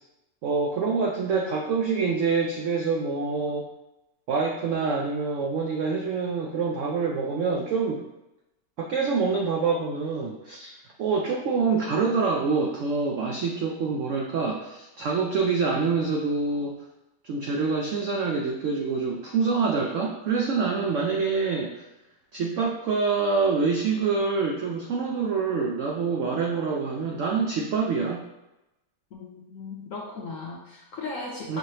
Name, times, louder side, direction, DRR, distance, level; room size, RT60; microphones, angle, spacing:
voice 1, 0.4-3.7 4.3-8.0 8.8-16.7 17.2-21.8 22.3-28.2 31.5-31.6, right 4 dB, 85° right, 0 dB, 0.6 m, -26 dB
voice 2, 29.1-31.6, left 3 dB, 70° left, -2 dB, 0.8 m, -37 dB
5.3 x 2.9 x 3.1 m, 0.94 s
omnidirectional pair, 1.9 m